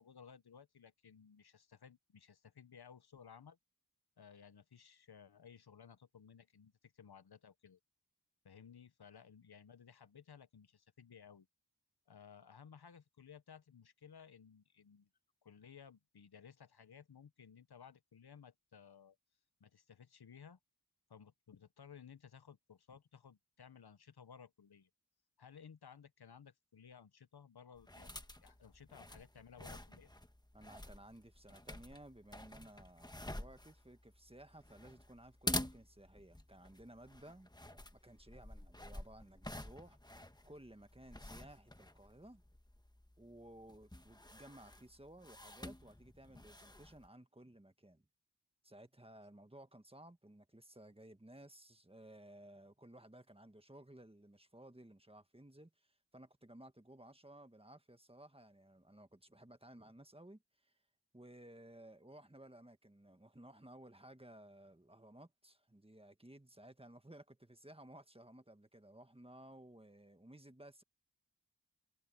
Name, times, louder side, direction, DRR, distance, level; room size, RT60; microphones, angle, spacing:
voice 1, 0.0-3.6 4.2-7.8 8.4-11.5 12.1-15.1 15.4-19.2 19.6-20.6 21.1-24.9 25.4-30.1, left 7 dB, 80° left, 0.9 m, -58 dB
sound 1, 27.8-47.1, left 1 dB, 10° left, 1.2 m, -48 dB
voice 2, 30.5-40.0 40.4-42.4 43.2-48.0 48.6-60.7 61.1-70.8, right 1 dB, 15° right, 1.5 m, -57 dB
wide cardioid pair, 50°, 38 cm